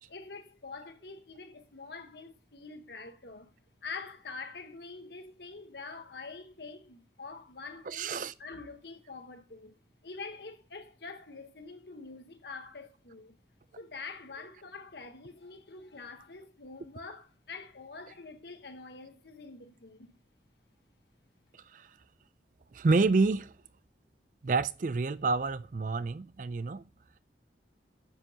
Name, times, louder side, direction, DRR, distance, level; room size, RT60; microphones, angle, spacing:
voice 1, 0.1-3.5 3.8-13.4 13.8-20.2, left 4 dB, 65° left, 1.3 m, -45 dB
voice 2, 7.9-8.3 21.7-21.9 22.7-23.5 24.4-26.8, right 3 dB, 45° right, 0.4 m, -28 dB
9.7 x 7.7 x 2.9 m
head